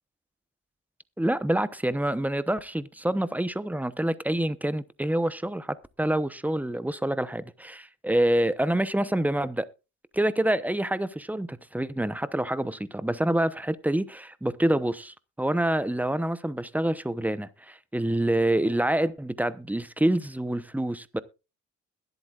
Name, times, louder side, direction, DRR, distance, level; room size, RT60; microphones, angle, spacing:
voice 1, 1.2-9.7 10.1-21.2, right 1 dB, 5° right, 0.8 m, -27 dB
21.5 x 8.0 x 2.4 m
cardioid pair, 90°, 30 cm